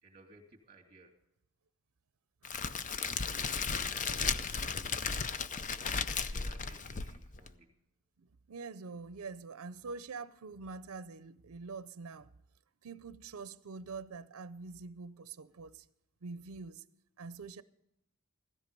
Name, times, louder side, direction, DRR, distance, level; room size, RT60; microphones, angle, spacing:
voice 1, 0.0-1.2 3.2-4.6 5.7-7.8, right 2 dB, 25° right, 2.7 m, -59 dB
Crackle, 2.4-7.5, left 5 dB, 35° left, 0.6 m, -35 dB
voice 2, 8.2-12.3 12.8-15.9 16.2-16.8 17.2-17.6, right 4 dB, 85° right, 0.5 m, -45 dB
16.0 x 13.5 x 5.3 m
head